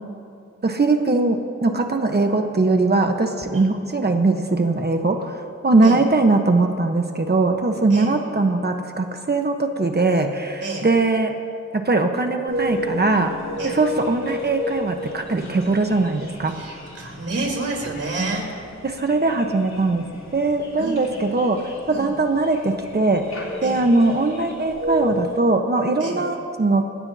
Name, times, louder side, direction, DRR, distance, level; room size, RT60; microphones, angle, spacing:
voice 1, 0.6-11.3 11.7-13.3 13.6-16.5 18.2-18.4 18.8-20.0 20.3-23.2 23.6-26.8, right 3 dB, 35° right, 4 dB, 1.1 m, -20 dB
sound 1, 12.5-25.3, equal, 65° left, 3.3 m, -33 dB
voice 2, 16.5-18.5 20.8-21.2 21.9-22.1 23.6-23.8 26.0-26.2, right 2 dB, 50° right, -1 dB, 3.8 m, -29 dB
28.0 x 16.0 x 2.8 m, 2.6 s
wide cardioid pair, 125°, 30 cm